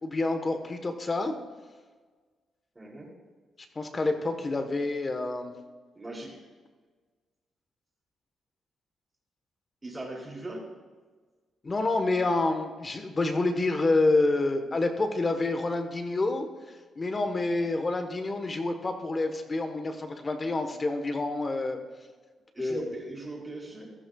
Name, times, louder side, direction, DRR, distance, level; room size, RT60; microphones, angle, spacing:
voice 1, 0.0-1.3 3.7-5.5 11.6-16.5 17.0-21.8 22.6-22.8, left 2 dB, 30° left, 6 dB, 1.1 m, -28 dB
voice 2, 2.7-3.1 5.9-6.3 9.8-10.7 22.5-23.9, right 1 dB, 20° right, -2 dB, 3.4 m, -39 dB
15.0 x 12.0 x 2.3 m, 1.4 s
cardioid pair, 100°, 0 cm